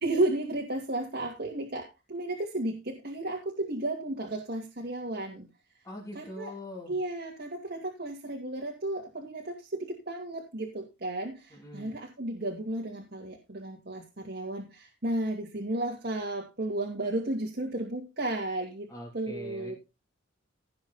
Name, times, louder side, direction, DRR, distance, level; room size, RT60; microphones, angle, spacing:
voice 1, 0.0-5.5 6.1-6.5 6.9-18.9 19.1-19.7, right 2 dB, 50° right, -1 dB, 2.4 m, -33 dB
voice 2, 5.8-6.9 11.5-11.9 18.9-19.8, left 1 dB, 15° left, -4 dB, 3.3 m, -42 dB
17.5 x 5.8 x 4.3 m, 0.27 s
head